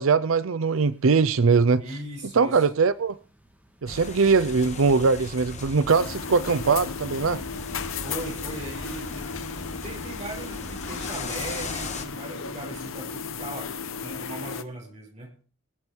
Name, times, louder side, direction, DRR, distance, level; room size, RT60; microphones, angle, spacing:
voice 1, 0.0-1.8 2.3-3.2 3.8-7.4, right 4 dB, 85° right, 0.6 m, -21 dB
sound 1, 0.6-14.5, right 1 dB, 10° right, 2.7 m, -53 dB
voice 2, 1.8-2.7 8.0-9.3 9.8-13.7 14.0-15.3, right 1 dB, 35° right, 5.6 m, -38 dB
sound 2, 3.9-12.0, left 3 dB, 35° left, 1.8 m, -38 dB
sound 3, 5.9-14.6, left 5 dB, 80° left, 1.0 m, -35 dB
22.0 x 8.0 x 4.5 m
head